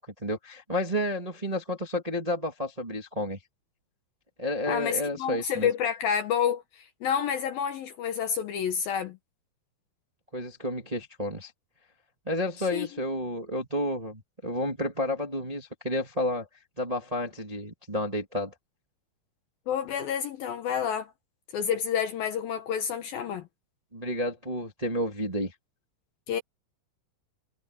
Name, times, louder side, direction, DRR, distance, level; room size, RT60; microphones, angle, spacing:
voice 1, 0.0-3.4 4.4-5.7 10.3-11.5 12.2-16.5 16.8-18.5 23.9-25.5, left 1 dB, 70° right, 0.3 m, -31 dB
voice 2, 4.7-9.2 12.7-12.9 19.7-21.1 21.5-23.4 26.3-26.4, left 8 dB, 80° left, 2.0 m, -29 dB
omnidirectional pair, 6.0 m